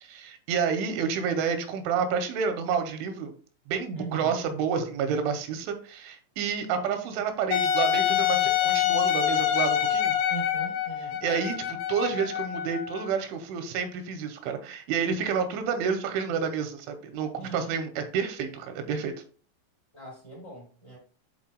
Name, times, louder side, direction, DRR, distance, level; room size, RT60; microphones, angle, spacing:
voice 1, 0.0-3.3 3.7-10.2 11.2-19.1, right 6 dB, 85° right, 3.1 m, -29 dB
voice 2, 3.9-4.4 10.3-11.2 17.4-17.8 19.9-21.0, right 3 dB, 40° left, 0.9 m, -40 dB
Wind instrument woodwind instrument, 7.5-13.1, left 10 dB, 75° left, 2.2 m, -26 dB
11.5 x 4.2 x 2.2 m
omnidirectional pair, 5.5 m